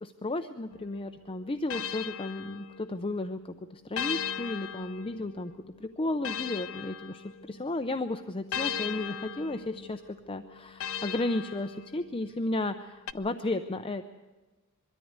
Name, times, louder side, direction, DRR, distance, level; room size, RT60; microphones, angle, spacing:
voice 1, 0.0-5.5 5.8-14.0, left 2 dB, 25° left, 8 dB, 0.6 m, -33 dB
sound 1, 0.7-3.2 4.0-7.7 8.5-12.3 13.1-13.2, left 8 dB, 65° left, 0.7 m, -38 dB
22.5 x 13.5 x 9.5 m, 1.2 s
head